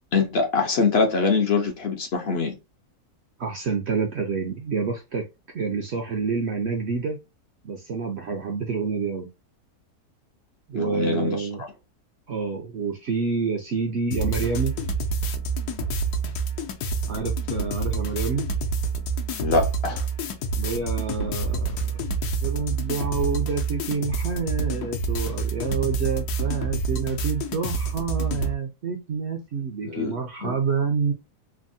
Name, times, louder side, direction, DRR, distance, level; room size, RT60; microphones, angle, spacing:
voice 1, 0.1-2.6 10.7-11.5 19.4-20.1 29.8-30.5, left 4 dB, 60° left, 0.6 m, -24 dB
voice 2, 3.4-5.2 5.5-7.2 7.6-9.3 10.7-11.6 12.3-14.8 17.1-18.5 20.6-22.0 22.4-31.1, right 5 dB, 70° right, 0.6 m, -28 dB
sound 1, 14.1-28.6, right 3 dB, 80° left, 1.1 m, -27 dB
3.4 x 2.0 x 2.5 m
omnidirectional pair, 1.7 m